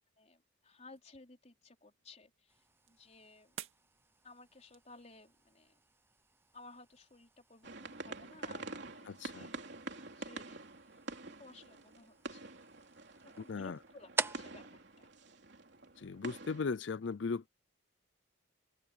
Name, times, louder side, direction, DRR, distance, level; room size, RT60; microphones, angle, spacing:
voice 1, 0.2-3.6 4.2-5.8 6.5-9.5 10.1-11.0 11.4-12.5 13.3-14.7 15.0-15.1, left 3 dB, 35° left, 4.4 m, -57 dB
sound 1, 0.7-5.7, right 9 dB, 90° right, 2.2 m, -56 dB
sound 2, 2.5-16.1, right 3 dB, 10° right, 0.7 m, -47 dB
sound 3, 7.6-16.7, right 2 dB, 60° right, 3.5 m, -47 dB
voice 2, 9.1-9.5 13.5-13.8 16.0-17.5, left 4 dB, 65° left, 0.5 m, -37 dB
head